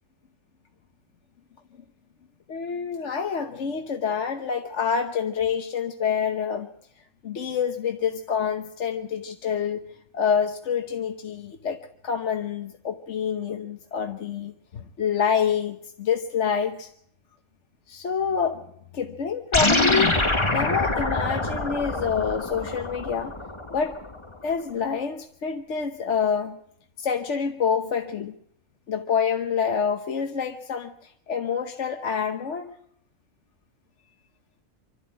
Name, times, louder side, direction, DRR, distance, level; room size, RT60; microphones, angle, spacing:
voice 1, 2.5-6.7 7.2-9.9 10.1-16.9 17.9-18.7 18.9-20.2 20.5-23.3 23.7-24.0 24.4-26.6 27.0-28.3 28.9-32.7, left 7 dB, 65° left, 5 dB, 1.4 m, -27 dB
sound 1, 19.5-24.2, left 2 dB, 20° left, 1.6 m, -25 dB
25.5 x 13.0 x 8.8 m, 0.70 s
omnidirectional pair, 1.3 m